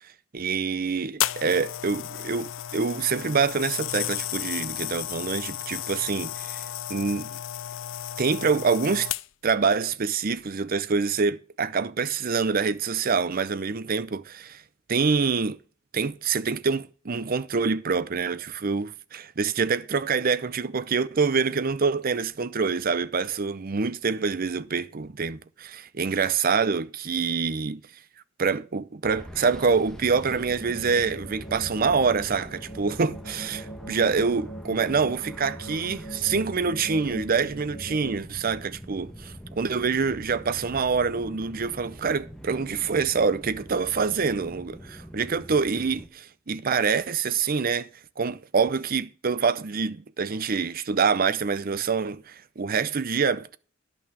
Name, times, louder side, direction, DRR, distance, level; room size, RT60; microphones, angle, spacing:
voice 1, 0.3-6.6 6.9-7.3 8.2-9.1 9.4-14.6 14.9-15.6 15.9-27.8 28.4-47.9 48.2-53.6, right 5 dB, 45° right, 0.6 m, -26 dB
sound 1, 1.2-9.5 10.3-10.5, left 12 dB, 70° left, 0.4 m, -33 dB
sound 2, 29.0-46.1, equal, 5° left, 1.4 m, -43 dB
sound 3, 30.0-38.2, right 1 dB, 40° left, 1.6 m, -42 dB
11.0 x 6.1 x 6.1 m
head